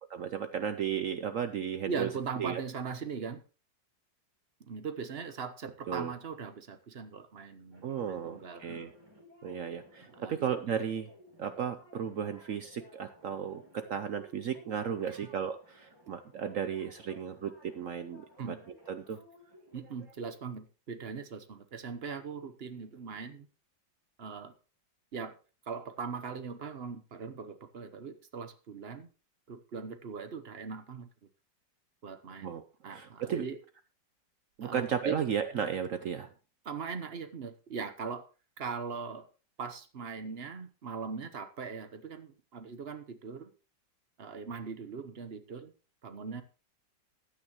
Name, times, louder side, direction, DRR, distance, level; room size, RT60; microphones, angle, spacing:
voice 1, 0.1-2.1 2.4-2.6 5.9-6.1 7.8-8.9 9.4-11.1 11.4-18.5 18.9-19.2 32.4-32.6 32.9-33.4 34.6-36.3, right 8 dB, 65° right, 10 dB, 0.8 m, -34 dB
voice 2, 1.9-3.4 4.6-8.9 10.0-10.6 15.1-15.2 18.4-18.6 19.7-23.5 24.2-24.5 25.1-25.3 25.7-29.1 29.5-31.1 32.0-32.5 32.8-33.6 34.6-35.2 36.6-38.2 38.6-39.3 39.6-43.5 44.2-45.7 46.0-46.4, right 5 dB, 45° right, 10 dB, 0.9 m, -40 dB
sound 1, 7.7-20.2, equal, 15° right, 2.4 m, -58 dB
15.0 x 9.8 x 3.0 m, 0.34 s
omnidirectional pair, 2.0 m